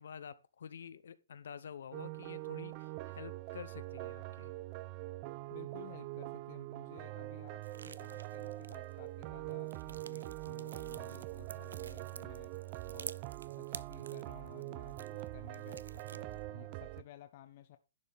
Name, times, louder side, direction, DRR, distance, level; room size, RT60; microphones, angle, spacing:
voice 1, 0.0-4.5, left 7 dB, 65° left, 0.8 m, -49 dB
sound 1, 1.9-17.0, right 19 dB, 30° right, 0.4 m, -44 dB
voice 2, 5.5-12.5 12.9-13.2 13.6-17.8, left 13 dB, 40° left, 0.6 m, -56 dB
sound 2, 7.6-9.1 9.5-15.3 15.5-16.4, right 6 dB, 85° right, 0.5 m, -50 dB
11.0 x 6.7 x 3.5 m
hypercardioid pair, 160°, 0 cm